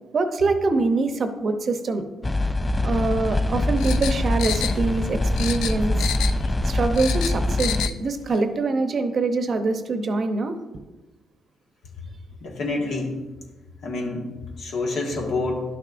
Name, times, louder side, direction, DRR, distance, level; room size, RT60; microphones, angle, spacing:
voice 1, 0.1-2.1 2.8-6.1 6.6-10.6, right 3 dB, 50° right, 7 dB, 0.8 m, -24 dB
sound 1, 2.2-7.9, left 1 dB, 15° left, 0.3 m, -24 dB
sound 2, 3.8-5.1 5.4-6.5 6.8-8.0 8.3-8.4, left 9 dB, 90° left, 0.4 m, -30 dB
voice 2, 12.4-13.2 13.8-14.3 14.6-15.6, left 2 dB, 70° left, 0 dB, 1.7 m, -27 dB
11.0 x 6.3 x 2.6 m, 1.2 s
cardioid pair, 90°, 0 cm